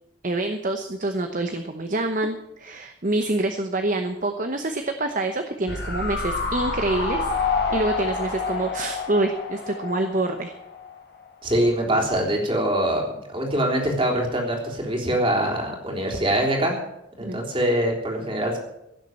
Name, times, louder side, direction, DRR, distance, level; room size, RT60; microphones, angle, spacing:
voice 1, 0.2-7.3 7.7-10.5 17.2-17.4, right 2 dB, 45° right, 6 dB, 1.0 m, -26 dB
sound 1, 5.7-10.9 11.2-11.3, left 4 dB, 55° left, 2.8 m, -28 dB
voice 2, 11.4-16.7 17.2-18.6, right 1 dB, 30° right, 0 dB, 3.5 m, -23 dB
16.5 x 7.4 x 7.7 m, 0.86 s
head